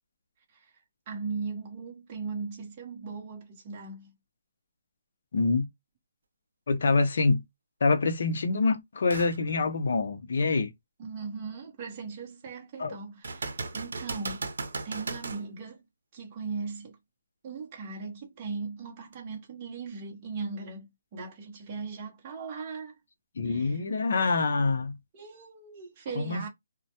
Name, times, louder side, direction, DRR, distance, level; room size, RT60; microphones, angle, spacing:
voice 1, 0.5-4.1 11.0-14.5 14.8-15.9 16.1-17.0 17.4-23.0 23.4-23.8 25.1-26.5, right 4 dB, 25° right, 0.7 m, -38 dB
voice 2, 5.3-5.7 6.7-7.4 7.8-10.7 12.8-12.9 23.4-25.0 26.2-26.4, left 3 dB, 60° left, 0.5 m, -25 dB
sound 1, 9.1-9.4 9.9-10.0 13.2-15.4 19.1-19.2, right 3 dB, 75° right, 0.6 m, -36 dB
2.1 x 2.1 x 2.7 m
hypercardioid pair, 170°, 0 cm